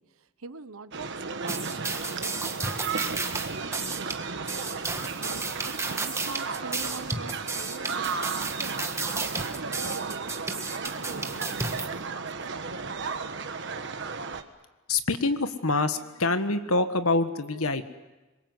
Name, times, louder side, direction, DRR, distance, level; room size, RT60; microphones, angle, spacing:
voice 1, 0.0-13.0, right 4 dB, 75° right, 13 dB, 1.0 m, -45 dB
sound 1, 0.9-14.4, right 4 dB, 55° right, 1.3 m, -34 dB
sound 2, 1.5-11.9, right 3 dB, 15° right, 1.5 m, -33 dB
voice 2, 14.9-17.9, left 3 dB, 80° left, 10 dB, 1.5 m, -26 dB
26.0 x 22.5 x 7.9 m, 1.1 s
head